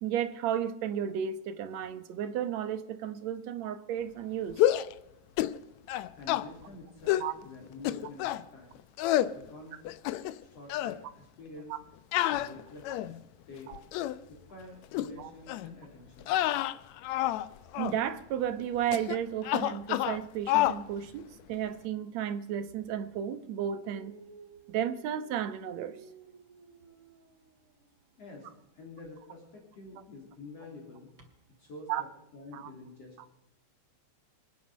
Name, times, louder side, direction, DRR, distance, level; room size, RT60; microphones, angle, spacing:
voice 1, 0.0-4.6 7.2-7.3 11.7-11.8 13.7-13.8 15.2-15.3 17.8-24.2 24.7-26.0 31.9-32.0 32.5-32.7, right 9 dB, 70° right, 11 dB, 2.3 m, -33 dB
sound 1, 4.5-4.9 5.4-5.6 5.9-6.4 7.1-7.3 7.8-8.4 9.0-9.3 9.8-10.4 10.7-11.0 12.1-13.2 13.7-14.2 14.9-15.1 15.5-15.7 16.2-17.5 17.7-18.0 18.9-19.2 19.4-20.2 20.5-20.8, left 14 dB, 75° left, 1.9 m, -28 dB
voice 2, 6.2-8.8 9.3-9.8 10.4-11.7 12.3-13.2 13.5-13.7 14.3-16.4 28.2-31.1 31.6-32.1 32.3-33.3, left 2 dB, 55° left, -1 dB, 4.3 m, -48 dB
Dog, 23.9-27.9 28.9-29.1 31.2-31.3, right 6 dB, 40° right, 3.2 m, -55 dB
27.5 x 9.5 x 5.1 m, 0.85 s
omnidirectional pair, 3.4 m